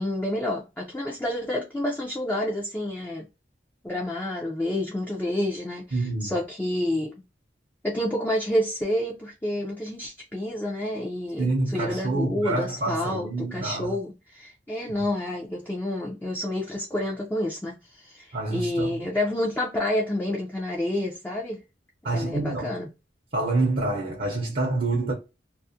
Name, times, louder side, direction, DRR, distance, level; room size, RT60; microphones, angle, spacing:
voice 1, 0.0-3.3 3.8-7.1 7.8-21.6 22.1-22.9, left 1 dB, 10° left, 0.4 m, -29 dB
voice 2, 5.9-6.4 11.4-14.0 18.3-19.1 22.0-22.8 23.3-25.1, right 2 dB, 50° right, 0.6 m, -27 dB
2.4 x 2.0 x 2.6 m
head